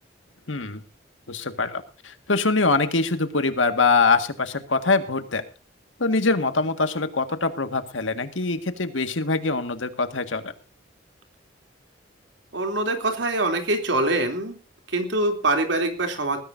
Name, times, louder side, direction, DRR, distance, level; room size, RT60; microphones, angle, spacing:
voice 1, 0.5-0.8 1.3-5.4 6.0-10.5, left 3 dB, 85° left, 8 dB, 1.8 m, -23 dB
voice 2, 12.5-14.6 14.9-16.4, right 2 dB, 70° right, 5 dB, 3.1 m, -24 dB
20.0 x 15.0 x 2.7 m, 0.35 s
head